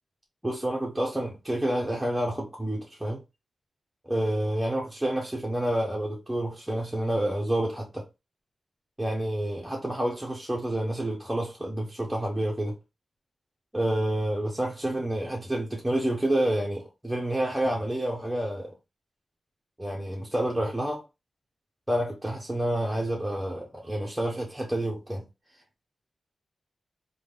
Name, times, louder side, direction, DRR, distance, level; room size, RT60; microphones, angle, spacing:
voice 1, 0.4-3.2 4.0-8.0 9.0-12.8 13.7-18.7 19.8-21.0 21.9-25.2, right 1 dB, 10° right, 0.8 m, -29 dB
3.3 x 2.3 x 3.1 m
cardioid pair, 50°, 0 cm